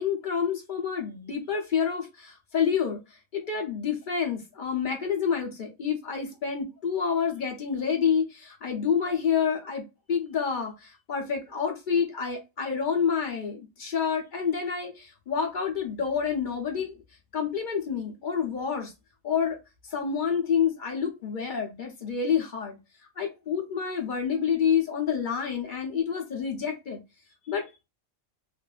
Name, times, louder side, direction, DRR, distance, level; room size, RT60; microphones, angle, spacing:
voice 1, 0.0-3.0 3.3-17.0 17.3-18.9 19.2-19.6 19.9-22.8 23.2-27.0 27.5-27.9, left 7 dB, 45° left, 0.8 m, -28 dB
2.6 x 2.5 x 2.3 m
omnidirectional pair, 1.4 m